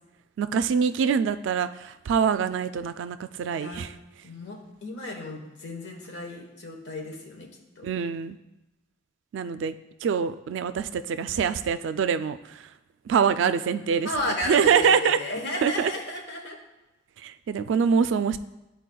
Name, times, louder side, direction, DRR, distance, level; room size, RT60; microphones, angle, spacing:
voice 1, 0.4-3.9 7.8-8.4 9.3-9.7 10.0-12.7 13.1-14.1 14.5-15.2 15.6-15.9 17.2-18.4, right 6 dB, 85° right, 12 dB, 0.3 m, -24 dB
voice 2, 3.5-3.9 4.2-7.5 7.8-7.9 14.0-16.6, left 1 dB, 70° left, 1 dB, 1.2 m, -33 dB
10.5 x 4.0 x 2.3 m, 1.0 s
head